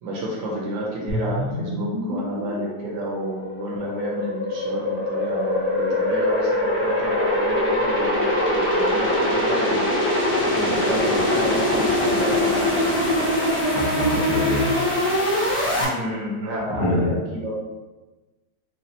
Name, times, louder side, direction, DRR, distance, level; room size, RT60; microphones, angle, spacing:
voice 1, 0.0-9.9 10.5-12.9 15.6-17.5, right 1 dB, 70° right, -3 dB, 1.4 m, -30 dB
sound 1, 1.1-15.8, left 1 dB, 45° left, 1.0 m, -23 dB
voice 2, 13.7-14.9 16.7-17.1, equal, 75° left, -7 dB, 2.1 m, -25 dB
5.2 x 2.4 x 2.8 m, 1.2 s
omnidirectional pair, 2.4 m